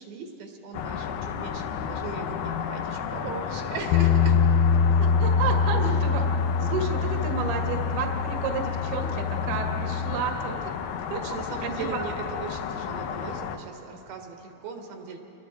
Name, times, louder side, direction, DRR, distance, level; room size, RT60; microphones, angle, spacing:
voice 1, 0.0-4.4 5.7-6.0 6.6-6.9 11.2-15.2, right 5 dB, 80° right, 2 dB, 3.8 m, -38 dB
sound 1, 0.7-13.6, left 7 dB, 70° left, 2.0 m, -33 dB
Bass guitar, 3.9-10.2, left 6 dB, 90° left, 2.5 m, -24 dB
voice 2, 5.0-6.2 6.6-10.7 11.1-11.2 11.6-12.1, right 5 dB, 65° right, 3 dB, 2.6 m, -31 dB
29.5 x 21.5 x 4.7 m, 3.0 s
omnidirectional pair, 4.3 m